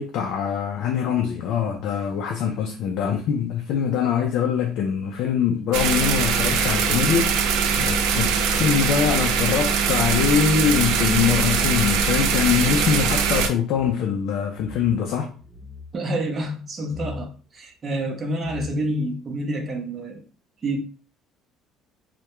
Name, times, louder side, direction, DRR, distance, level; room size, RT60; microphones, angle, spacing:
voice 1, 0.0-15.4, left 7 dB, 65° left, 0.3 m, -23 dB
sound 1, 5.7-13.5, right 6 dB, 85° right, 0.3 m, -22 dB
sound 2, 15.4-15.9 16.9-17.3 18.1-18.2 18.4-19.0, left 2 dB, 10° left, 0.7 m, -40 dB
voice 2, 15.9-20.2 20.6-20.8, right 1 dB, 30° right, 0.6 m, -28 dB
2.2 x 2.1 x 2.9 m
cardioid pair, 125°, 0 cm